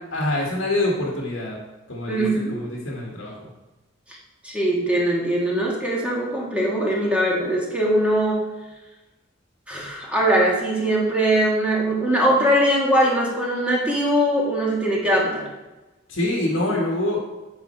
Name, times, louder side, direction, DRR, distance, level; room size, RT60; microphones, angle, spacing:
voice 1, 0.1-1.6 1.9-2.2 2.5-3.5 16.1-17.2, left 1 dB, 80° left, -3 dB, 1.6 m, -25 dB
voice 2, 2.1-2.6 4.4-8.5 9.7-15.4, right 1 dB, 5° right, -4 dB, 1.5 m, -21 dB
8.7 x 5.6 x 4.4 m, 1.1 s
head